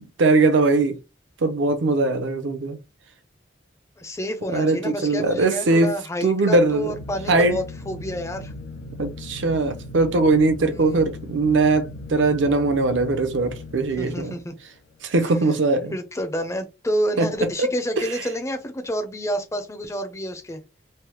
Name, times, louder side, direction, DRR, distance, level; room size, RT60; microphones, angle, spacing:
voice 1, 0.2-0.9 1.4-2.8 4.5-5.9 6.2-6.9 7.3-7.6 9.0-14.4 15.0-15.9 17.2-17.3 17.6-17.7, right 3 dB, 75° right, 0.5 m, -20 dB
voice 2, 4.0-8.5 10.7-11.1 14.0-14.6 15.9-20.6, equal, 15° left, 0.4 m, -29 dB
sound 1, 6.4-14.8, left 2 dB, 85° left, 0.6 m, -38 dB
3.2 x 2.0 x 2.9 m
head